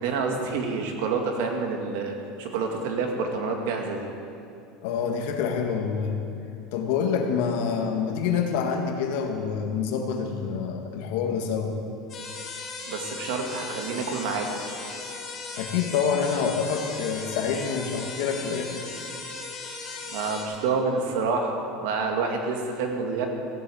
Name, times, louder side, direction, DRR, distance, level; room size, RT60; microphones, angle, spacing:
voice 1, 0.0-4.1 12.9-14.6 20.1-23.3, right 4 dB, 75° right, 2 dB, 2.2 m, -28 dB
voice 2, 4.8-6.2 6.7-11.7 15.6-18.8, left 6 dB, 75° left, 3 dB, 1.8 m, -27 dB
sound 1, 12.1-20.4, left 3 dB, 30° left, 3.3 m, -37 dB
16.0 x 8.5 x 7.8 m, 2.6 s
cardioid pair, 155°, 0 cm